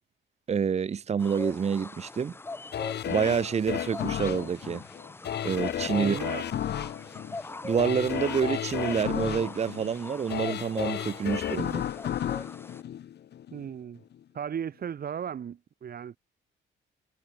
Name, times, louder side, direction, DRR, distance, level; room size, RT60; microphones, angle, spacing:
voice 1, 0.5-2.3 3.1-4.8 5.4-6.2 7.6-11.8, right 7 dB, 35° right, 0.7 m, -28 dB
sound 1, 1.2-12.8, left 3 dB, 10° left, 0.4 m, -42 dB
sound 2, 2.7-13.7 14.1-14.2, left 10 dB, 55° left, 0.9 m, -33 dB
voice 2, 5.9-6.4 13.5-14.0 14.3-16.2, right 8 dB, 50° right, 1.5 m, -36 dB
cardioid pair, 90°, 20 cm